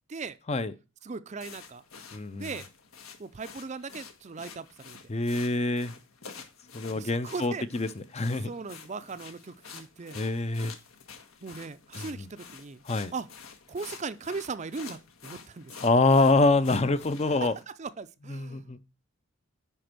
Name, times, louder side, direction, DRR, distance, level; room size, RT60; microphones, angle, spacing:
voice 1, 1.0-1.8 2.4-2.6 3.2-5.0 6.9-8.0 8.4-10.2 11.4-12.8 13.1-13.3 13.7-15.7 17.3-18.7, right 4 dB, 35° right, 0.5 m, -38 dB
sound 1, 1.4-17.6, left 5 dB, 80° left, 1.6 m, -48 dB
voice 2, 2.1-2.5 5.1-5.9 6.7-8.5 10.1-10.7 12.0-12.3 12.9-13.1 15.8-17.5 18.3-18.8, left 3 dB, 30° left, 0.6 m, -25 dB
10.0 x 4.4 x 6.0 m
head